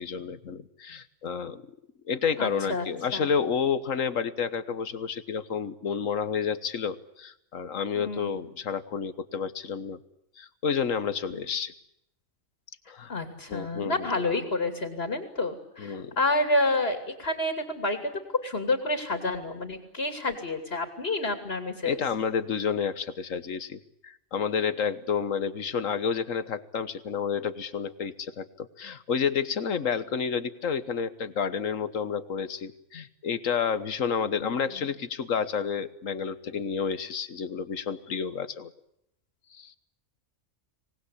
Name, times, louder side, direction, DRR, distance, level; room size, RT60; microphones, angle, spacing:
voice 1, 0.0-1.6 2.1-10.0 10.4-11.7 12.9-13.1 13.5-14.2 15.8-16.1 21.8-38.7 39.5-39.8, left 6 dB, 80° left, 14 dB, 1.6 m, -30 dB
voice 2, 2.4-2.8 3.1-3.3 7.9-8.3 11.3-11.4 13.1-18.0 18.4-22.0 34.4-34.6, left 2 dB, 50° left, 7 dB, 3.1 m, -29 dB
25.5 x 19.5 x 9.9 m, 0.78 s
omnidirectional pair, 1.4 m